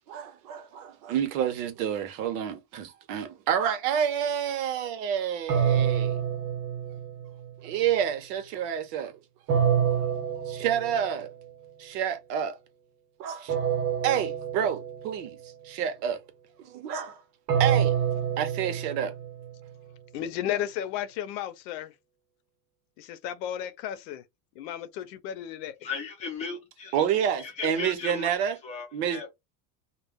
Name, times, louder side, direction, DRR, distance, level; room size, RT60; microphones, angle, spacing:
voice 1, 0.1-6.2 7.6-9.2 10.5-11.3 11.8-12.6 13.2-13.6 14.0-15.4 15.6-16.2 16.6-17.2 17.6-17.9 18.4-19.1 26.9-28.6 28.9-29.2, right 9 dB, 70° right, 0.9 m, -29 dB
sound 1, 5.5-7.5 9.5-11.3 13.5-15.3 17.5-19.7, right 8 dB, 90° right, 1.2 m, -27 dB
voice 2, 20.1-21.9 23.0-24.2 24.5-25.9, left 10 dB, 80° left, 0.7 m, -34 dB
voice 3, 25.8-27.0 27.4-28.3 28.6-29.3, left 5 dB, 15° left, 0.4 m, -36 dB
2.3 x 2.1 x 3.4 m
cardioid pair, 180°, 49 cm